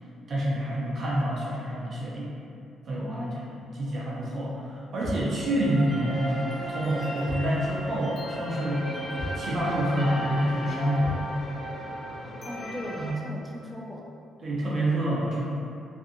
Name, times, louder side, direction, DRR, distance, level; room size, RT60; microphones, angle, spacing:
voice 1, 0.3-2.3 2.9-3.3 3.8-6.4 6.7-8.9 9.4-11.3 13.0-13.2 14.4-15.5, right 1 dB, 50° right, -6 dB, 0.7 m, -27 dB
voice 2, 3.0-3.7 12.4-14.1, left 1 dB, 10° left, -2 dB, 0.3 m, -39 dB
sound 1, 5.0-5.4 7.3-7.6 7.9-8.0 9.2-9.5 11.0-11.3, equal, 90° right, 0.6 m, -34 dB
sound 2, 5.4-13.1, equal, 45° left, 0.7 m, -35 dB
2.6 x 2.4 x 2.6 m, 2.5 s
cardioid pair, 90°, 0 cm